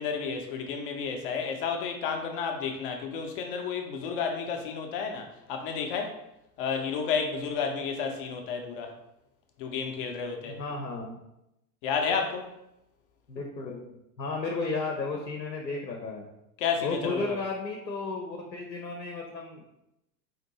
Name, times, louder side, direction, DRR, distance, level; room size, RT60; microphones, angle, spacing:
voice 1, 0.0-6.2 6.6-8.9 9.6-10.6 11.8-12.5 16.6-17.4, left 6 dB, 35° left, 4 dB, 0.5 m, -31 dB
voice 2, 10.4-11.2 13.3-16.3 16.8-19.8, left 3 dB, 85° left, 2 dB, 0.7 m, -34 dB
4.3 x 2.5 x 2.9 m, 0.86 s
figure-of-eight pair, 95°, 49 cm